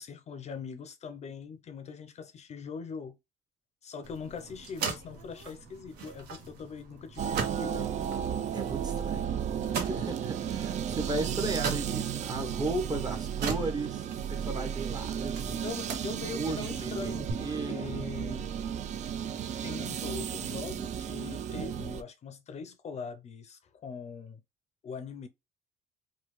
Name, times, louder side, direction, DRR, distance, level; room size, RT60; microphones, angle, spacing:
voice 1, 0.0-3.2 3.8-7.9 15.6-18.5 19.6-24.4 24.8-25.3, left 5 dB, 40° left, 0.5 m, -41 dB
sound 1, 4.0-17.3, right 5 dB, 85° right, 0.9 m, -41 dB
sound 2, 7.2-22.0, right 8 dB, 45° right, 0.4 m, -34 dB
voice 2, 8.5-9.2 9.8-15.7 16.3-17.9, right 2 dB, 25° right, 0.8 m, -35 dB
3.1 x 2.2 x 3.0 m
cardioid pair, 110°, 17 cm